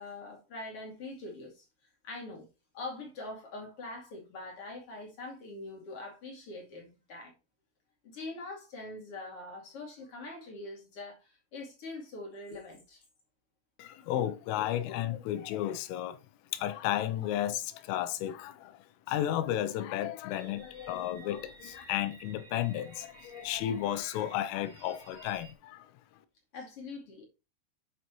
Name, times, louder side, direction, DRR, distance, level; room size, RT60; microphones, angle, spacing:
voice 1, 0.0-1.7 2.0-2.5 2.7-7.3 8.0-13.0 26.5-27.2, left 2 dB, 40° left, 2.3 m, -43 dB
voice 2, 13.8-16.2 16.5-25.9, left 12 dB, 85° left, 3.4 m, -33 dB
sound 1, 20.3-25.5, right 3 dB, 50° right, 1.5 m, -55 dB
9.2 x 6.8 x 3.0 m
omnidirectional pair, 5.8 m